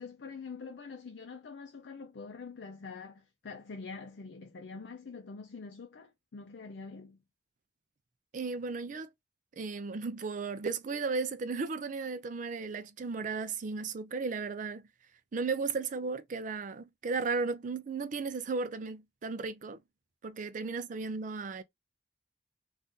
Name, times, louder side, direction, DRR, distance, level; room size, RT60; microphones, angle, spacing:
voice 1, 0.0-7.2, left 4 dB, 70° left, 0.5 m, -45 dB
voice 2, 8.3-9.1 9.6-14.9 15.3-19.8 20.2-21.6, right 4 dB, 45° right, 0.4 m, -35 dB
2.7 x 2.5 x 3.5 m
head